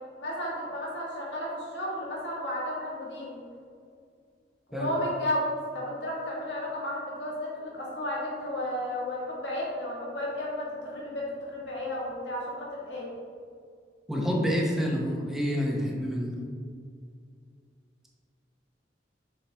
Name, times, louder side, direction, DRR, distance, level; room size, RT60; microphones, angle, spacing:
voice 1, 0.2-3.4 4.7-5.4 5.7-13.1, left 1 dB, 70° left, -5 dB, 1.6 m, -33 dB
voice 2, 14.1-16.5, equal, ahead, -2 dB, 0.8 m, -28 dB
7.0 x 4.7 x 3.4 m, 2.2 s
head